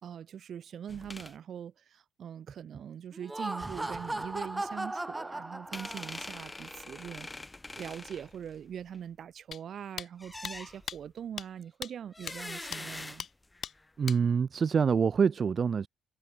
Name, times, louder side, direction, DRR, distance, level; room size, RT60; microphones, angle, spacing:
voice 1, 0.0-7.3 7.8-13.3, right 9 dB, 60° right, 4.8 m, -42 dB
sound 1, 0.9-1.3 5.7-9.0 10.2-11.1 12.1-13.9, left 2 dB, 15° left, 2.0 m, -44 dB
Laughter, 3.1-6.4, right 2 dB, 15° right, 1.0 m, -37 dB
sound 2, 9.5-9.6 10.0-10.1 10.4-10.5 10.9-11.0 11.4-11.5 11.8-11.9 12.3-12.4 12.7-12.8 13.2-13.3 13.6-13.7 14.1-14.2, left 8 dB, 55° left, 3.8 m, -38 dB
voice 2, 14.0-15.9, right 6 dB, 45° right, 1.8 m, -26 dB
cardioid pair, 85°, 0 cm